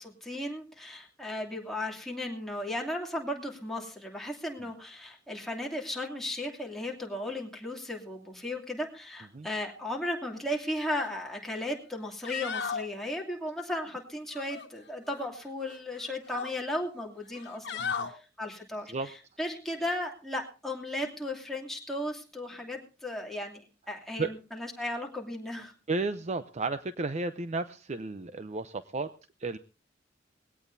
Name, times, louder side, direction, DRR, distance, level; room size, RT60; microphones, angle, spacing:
voice 1, 0.0-19.1 19.4-25.7, left 1 dB, ahead, -1 dB, 2.7 m, -36 dB
sound 1, 10.9-11.1 11.5-11.6 12.1-12.9 14.3-15.3 15.6-16.5 17.3-18.1 19.8-20.0, left 6 dB, 65° left, 1.5 m, -37 dB
voice 2, 17.8-18.1 18.9-19.1 24.2-24.3 25.9-29.1 29.4-29.6, right 3 dB, 40° right, 11 dB, 0.6 m, -33 dB
20.0 x 17.0 x 2.7 m, 0.33 s
head